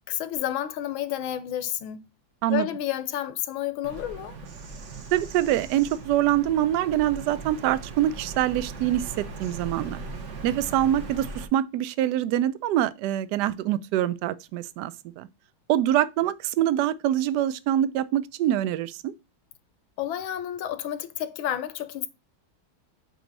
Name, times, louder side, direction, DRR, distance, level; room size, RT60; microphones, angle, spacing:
voice 1, 0.1-2.0 2.5-4.4 20.0-22.1, left 11 dB, 80° left, 1.4 m, -30 dB
Bird vocalization bird call bird song, 3.8-11.4, right 3 dB, 45° right, 1.0 m, -39 dB
voice 2, 5.1-10.0 10.4-15.3 15.7-19.1, right 12 dB, 75° right, 1.0 m, -25 dB
7.8 x 3.1 x 4.0 m
omnidirectional pair, 2.2 m